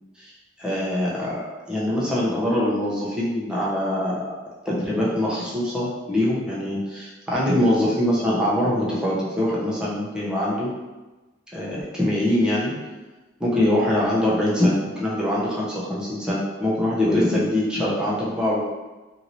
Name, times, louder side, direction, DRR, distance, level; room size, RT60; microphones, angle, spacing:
voice 1, 0.6-4.3 4.6-10.7 11.5-12.7 13.4-18.6, left 1 dB, 5° right, -7 dB, 0.6 m, -23 dB
2.7 x 2.6 x 2.9 m, 1.1 s
head